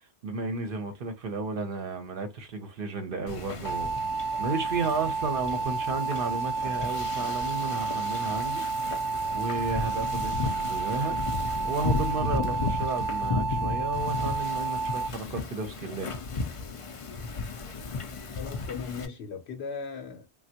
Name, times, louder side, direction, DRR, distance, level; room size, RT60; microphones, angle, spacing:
voice 1, 0.2-4.0 4.4-8.9 9.3-11.2 11.6-16.1 17.3-17.4, right 3 dB, 60° right, 0.8 m, -33 dB
Wind / Ocean, 3.3-19.1, left 4 dB, 50° left, 0.4 m, -35 dB
sound 1, 3.6-15.1, right 4 dB, 35° right, 0.3 m, -31 dB
voice 2, 18.4-20.3, left 5 dB, 80° left, 0.9 m, -37 dB
3.3 x 2.2 x 2.7 m
omnidirectional pair, 1.1 m